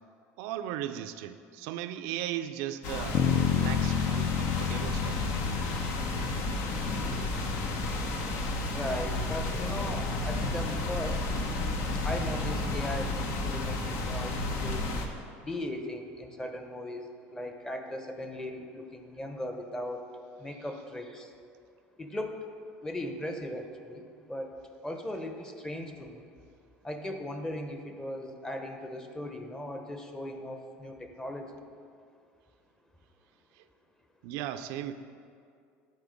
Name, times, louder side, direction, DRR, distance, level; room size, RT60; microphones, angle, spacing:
voice 1, 0.4-5.2 6.1-6.5 33.5-33.6 34.2-34.9, right 11 dB, 75° right, 10 dB, 0.4 m, -37 dB
sound 1, 2.8-15.1, left 2 dB, 65° left, 0.9 m, -32 dB
sound 2, 3.1-7.2, left 9 dB, 50° left, 0.5 m, -30 dB
voice 2, 8.6-11.2 11.9-14.9 15.4-20.0 20.4-21.3 22.0-22.4 22.8-24.6 24.8-26.3 26.8-31.6, left 1 dB, 10° left, 5 dB, 0.8 m, -38 dB
10.5 x 4.3 x 5.2 m, 2.3 s
supercardioid pair, 105°, 5 cm